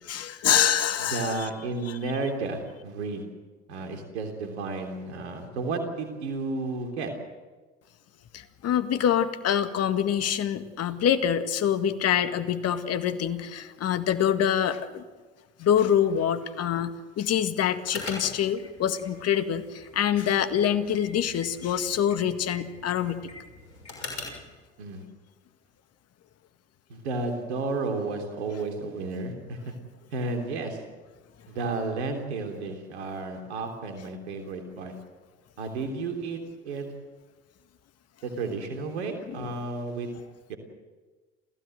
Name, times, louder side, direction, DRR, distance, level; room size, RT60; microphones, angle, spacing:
voice 1, 0.1-1.5 8.3-15.1 15.6-23.3 39.3-39.5, left 9 dB, 50° left, 10 dB, 1.9 m, -25 dB
voice 2, 1.0-3.2 3.7-7.1 24.8-25.0 26.9-29.7 30.1-30.8 31.5-34.9 35.6-36.9 38.2-40.1 40.5-40.6, right 3 dB, 80° right, 4 dB, 3.3 m, -32 dB
sound 1, 17.8-24.5, left 3 dB, 85° left, 6.4 m, -43 dB
29.0 x 16.0 x 7.9 m, 1.3 s
hypercardioid pair, 65°, 33 cm